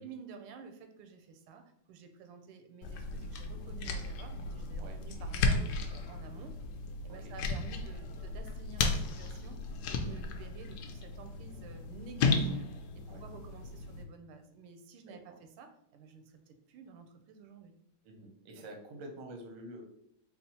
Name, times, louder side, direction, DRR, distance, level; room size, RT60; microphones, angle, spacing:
voice 1, 0.0-6.5 7.0-12.7 13.0-17.7, right 5 dB, 90° right, 6 dB, 1.5 m, -51 dB
sound 1, 2.8-14.0, left 3 dB, 75° left, 1.1 m, -35 dB
voice 2, 15.1-15.4 18.0-19.8, right 1 dB, 65° right, 2 dB, 0.8 m, -48 dB
4.2 x 2.0 x 4.1 m, 0.75 s
omnidirectional pair, 2.3 m